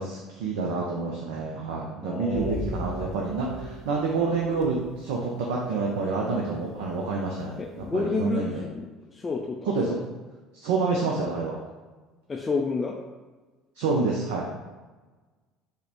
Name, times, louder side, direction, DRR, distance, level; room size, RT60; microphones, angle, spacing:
voice 1, 0.0-8.6 9.7-10.0 10.6-11.6 13.8-14.5, right 4 dB, 70° right, -1 dB, 0.4 m, -28 dB
voice 2, 2.0-2.6 7.6-10.0 12.3-13.0, left 4 dB, 25° left, 0 dB, 0.3 m, -30 dB
sound 1, 2.3-5.0 5.4-5.6 6.7-6.8 7.4-7.5 7.8-7.9, left 1 dB, 55° left, 0.8 m, -36 dB
4.9 x 2.1 x 2.8 m, 1.3 s
figure-of-eight pair, 60°, 0 cm